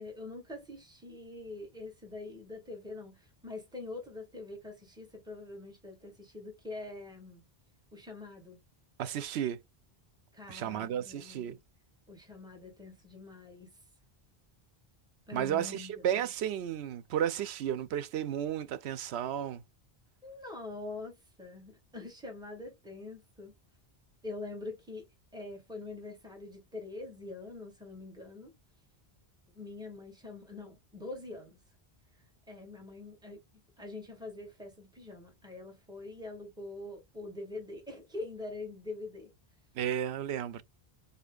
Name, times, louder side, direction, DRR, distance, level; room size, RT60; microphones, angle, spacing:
voice 1, 0.0-7.4 7.9-8.6 10.3-11.6 12.1-13.7 15.3-16.2 20.2-23.5 24.2-25.0 25.3-28.5 29.5-31.6 32.5-33.4 33.8-39.3, left 2 dB, 5° right, 1.9 m, -44 dB
voice 2, 9.0-9.6 10.5-11.6 15.3-19.6 39.7-40.6, right 10 dB, 85° right, 0.9 m, -33 dB
6.5 x 2.8 x 2.4 m
omnidirectional pair, 1.1 m